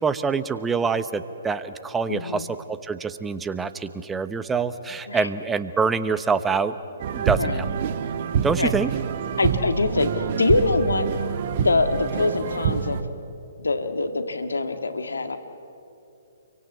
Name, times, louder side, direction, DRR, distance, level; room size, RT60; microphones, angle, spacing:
voice 1, 0.0-6.7 7.1-7.7 8.4-8.9, right 5 dB, 10° right, 12 dB, 1.0 m, -25 dB
voice 2, 2.1-2.5 5.1-5.3 7.3-7.6 8.6-8.7 9.4-11.1 11.6-13.0 13.6-15.4, left 3 dB, 85° left, 8 dB, 1.9 m, -24 dB
sound 1, 7.0-13.0, right 7 dB, 45° right, 1.5 m, -26 dB
29.5 x 24.0 x 8.1 m, 2.7 s
hypercardioid pair, 135°, 0 cm